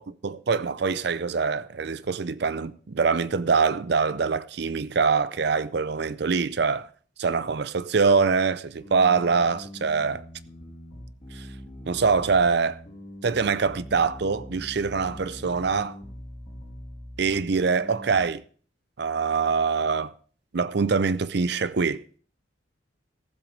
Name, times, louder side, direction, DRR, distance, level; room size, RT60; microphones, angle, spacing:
voice 1, 0.0-6.9 7.2-10.2 11.3-11.5 11.9-12.8 13.2-16.0 17.2-18.4 19.0-20.1 20.5-22.0, right 5 dB, 55° right, 0.5 m, -24 dB
sound 1, 8.8-18.3, equal, 25° left, 4.8 m, -43 dB
14.5 x 7.9 x 5.2 m
head